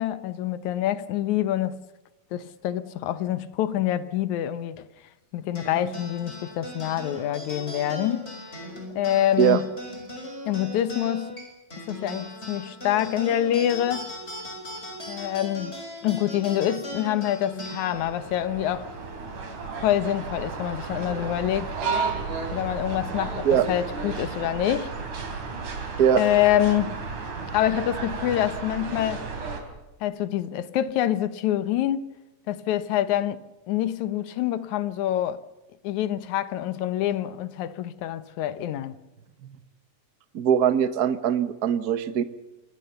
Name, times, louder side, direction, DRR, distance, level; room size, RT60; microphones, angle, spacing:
voice 1, 0.0-1.8 2.3-4.9 5.3-8.3 9.0-9.7 10.5-11.3 11.8-14.1 15.1-15.7 16.0-18.9 19.8-21.7 22.5-24.9 26.2-27.0 27.5-29.2 30.0-32.1 32.5-33.4 33.7-35.4 35.8-39.0, left 12 dB, 75° left, 2.4 m, -26 dB
sound 1, 5.5-20.3, left 1 dB, 20° left, 6.6 m, -39 dB
sound 2, 17.9-29.6, right 4 dB, 85° right, 4.8 m, -33 dB
voice 2, 40.3-42.2, right 9 dB, 65° right, 0.9 m, -21 dB
26.0 x 21.0 x 6.9 m
omnidirectional pair, 3.4 m